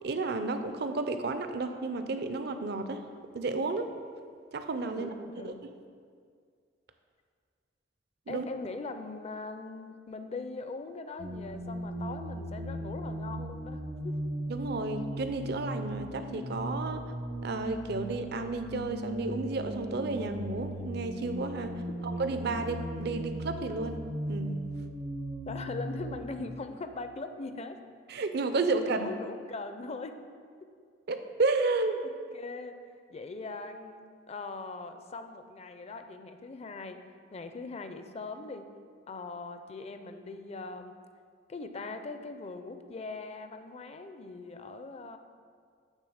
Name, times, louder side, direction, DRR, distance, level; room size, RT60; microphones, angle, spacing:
voice 1, 0.0-3.0 3.3-3.9 4.5-5.1 5.4-5.5 8.3-8.5 14.5-17.0 17.4-21.8 22.2-24.0 24.3-24.6 28.1-29.1 31.1-32.0, right 3 dB, 60° right, 8 dB, 0.6 m, -32 dB
voice 2, 4.9-5.6 8.3-14.2 25.5-27.8 28.7-30.2 30.6-30.7 32.3-32.8 33.1-37.0 37.3-38.7 39.1-41.0 41.5-45.2, left 3 dB, 35° left, 8 dB, 0.5 m, -41 dB
sound 1, 11.2-26.5, right 1 dB, 80° right, 1.1 m, -37 dB
8.9 x 3.7 x 6.4 m, 2.1 s
head